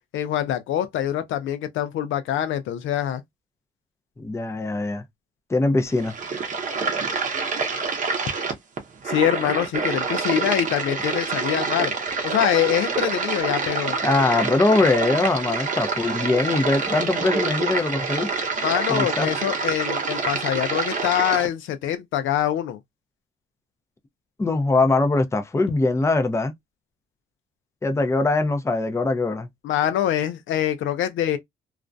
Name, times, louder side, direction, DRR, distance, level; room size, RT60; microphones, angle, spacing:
voice 1, 0.1-3.2 9.0-11.9 12.2-14.0 18.6-22.8 29.6-31.4, left 11 dB, 75° left, 0.5 m, -24 dB
voice 2, 4.2-5.0 5.5-6.1 7.3-7.5 14.0-18.3 18.9-19.3 24.4-26.5 27.8-29.5, left 3 dB, 15° left, 0.5 m, -22 dB
sound 1, 5.9-21.5, right 4 dB, 40° right, 0.7 m, -27 dB
2.4 x 2.1 x 2.5 m
cardioid pair, 90°, 20 cm